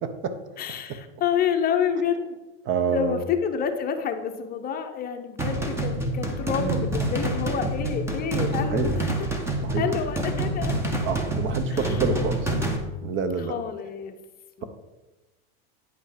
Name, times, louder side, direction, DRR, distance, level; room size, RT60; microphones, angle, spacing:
voice 1, 0.0-0.4 0.9-1.0 2.6-3.2 6.5-6.9 8.4-8.9 9.6-9.9 11.0-12.6 13.0-13.6, right 5 dB, 40° right, 10 dB, 1.0 m, -28 dB
voice 2, 0.6-2.4 2.9-9.1 9.7-10.7 11.7-11.8 13.5-14.1 14.6-14.7, left 7 dB, 30° left, 6 dB, 0.8 m, -28 dB
sound 1, 5.4-12.8, right 1 dB, 10° right, 1.2 m, -27 dB
9.6 x 5.5 x 5.1 m, 1.1 s
supercardioid pair, 135°, 31 cm